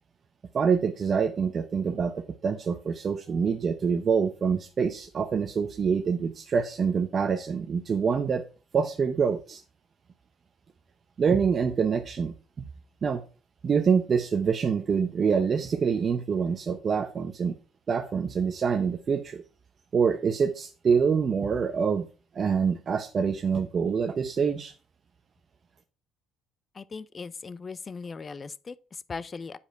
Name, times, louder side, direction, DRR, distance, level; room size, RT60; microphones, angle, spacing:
voice 1, 0.5-8.4 8.7-9.6 11.2-12.3 13.0-13.2 13.6-17.5 17.9-19.4 19.9-22.0 22.3-24.7, right 6 dB, 45° right, 0.7 m, -26 dB
voice 2, 26.7-29.6, left 4 dB, 35° left, 0.5 m, -39 dB
8.5 x 5.0 x 4.5 m
supercardioid pair, 70°, 0 cm